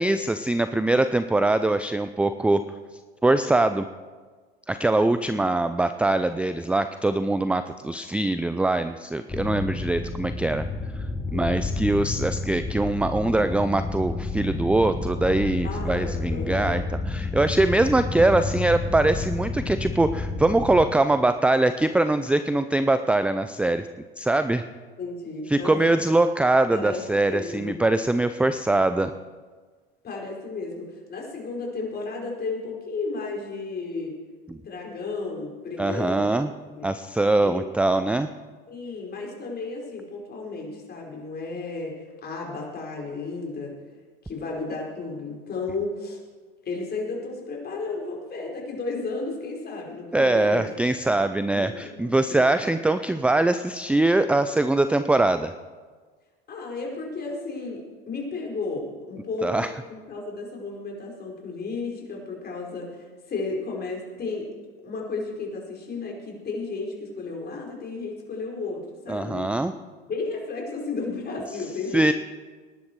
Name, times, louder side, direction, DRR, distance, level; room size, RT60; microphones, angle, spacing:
voice 1, 0.0-2.6 3.2-3.9 4.7-10.7 11.3-23.9 24.2-24.6 25.5-29.1 34.5-34.6 35.8-36.5 36.8-38.3 50.1-55.5 59.4-59.7 69.1-69.7 71.9-72.1, right 2 dB, 5° right, 10 dB, 0.5 m, -22 dB
sound 1, 9.3-20.8, left 3 dB, 10° left, 2.5 m, -30 dB
voice 2, 15.6-16.8 25.0-26.0 26.7-27.0 27.3-27.7 30.0-34.1 34.5-36.9 37.4-37.6 38.7-43.7 44.2-46.2 46.6-50.7 51.5-52.8 56.5-64.5 64.8-69.5 70.1-72.1, left 3 dB, 35° left, -1 dB, 4.9 m, -33 dB
19.5 x 11.5 x 4.7 m, 1.4 s
hypercardioid pair, 95°, 29 cm